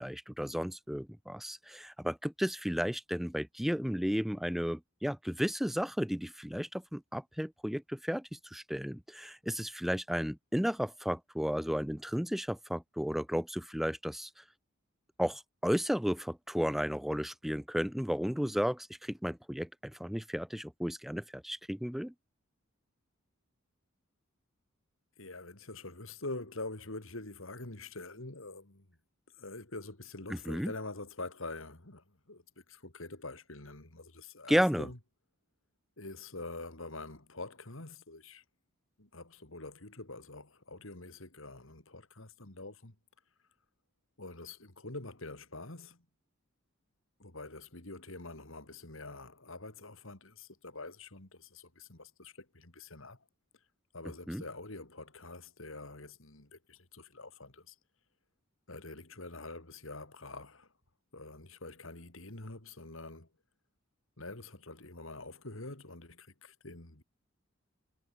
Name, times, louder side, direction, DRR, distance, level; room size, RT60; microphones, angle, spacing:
voice 1, 0.0-14.3 15.2-22.1 30.3-30.7 34.5-34.9 54.3-54.4, equal, ahead, 0.3 m, -33 dB
voice 2, 25.2-28.9 29.4-35.0 36.0-38.4 39.0-42.9 44.2-46.0 47.2-53.2 53.9-57.7 58.7-60.7 61.1-63.3 64.2-67.0, left 2 dB, 65° left, 3.3 m, -45 dB
head